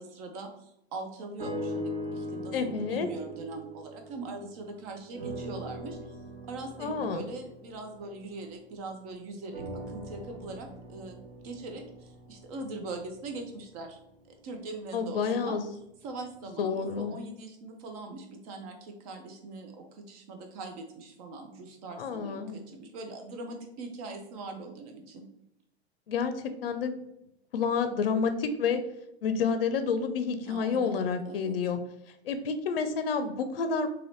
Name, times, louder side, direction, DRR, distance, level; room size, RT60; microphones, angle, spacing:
voice 1, 0.0-6.2 6.5-11.1 11.4-14.0 14.4-15.6 16.0-25.3 30.4-31.5, right 3 dB, 35° right, 4 dB, 0.7 m, -41 dB
sound 1, 1.4-4.7 5.1-8.9 9.5-13.7 14.4-14.5, equal, 60° right, 1.4 m, -41 dB
voice 2, 2.5-3.1 6.8-7.2 14.9-15.6 16.6-17.2 22.0-22.6 26.1-27.0 27.5-28.8 29.2-31.8 32.2-33.9, left 5 dB, 60° left, 9 dB, 0.6 m, -29 dB
3.8 x 3.0 x 3.1 m, 0.80 s
figure-of-eight pair, 105°, 32 cm